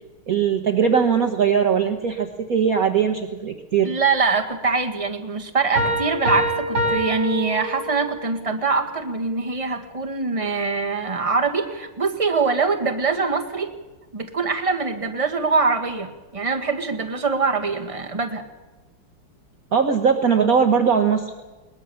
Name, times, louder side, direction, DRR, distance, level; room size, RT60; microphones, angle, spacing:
voice 1, 0.3-3.9 19.7-21.3, right 6 dB, 50° right, 4 dB, 1.4 m, -20 dB
voice 2, 3.8-13.7 14.1-18.4, right 4 dB, 15° right, 5 dB, 1.7 m, -23 dB
Piano, 5.8-8.2, equal, 70° right, 6.3 m, -25 dB
22.0 x 20.0 x 7.1 m, 1.2 s
omnidirectional pair, 2.3 m